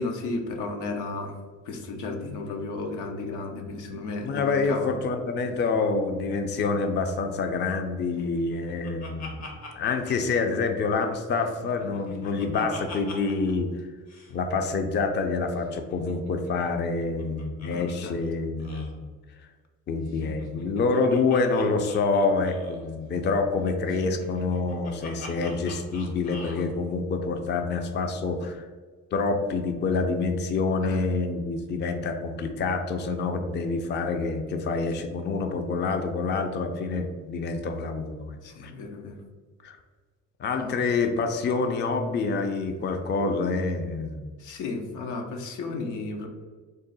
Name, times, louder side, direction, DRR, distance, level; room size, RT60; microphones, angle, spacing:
voice 1, 0.0-1.4 1.6-4.9 17.7-18.2 30.8-31.0 38.4-39.2 40.6-40.8 44.4-46.3, left 3 dB, 85° left, 3 dB, 0.6 m, -34 dB
voice 2, 4.2-9.5 9.8-13.7 14.3-19.0 19.9-28.7 29.1-38.4 38.6-38.7 39.6-39.8 40.4-44.3, left 4 dB, 35° left, 6 dB, 0.4 m, -27 dB
Laughter, 8.2-11.1 11.4-13.5 13.8-13.9 14.1-14.3 15.6-18.0 18.2-18.3 18.6-18.9 20.1-22.9 23.9-26.7, left 3 dB, 60° left, 0.9 m, -44 dB
3.7 x 2.1 x 3.9 m, 1.4 s
cardioid pair, 90°, 30 cm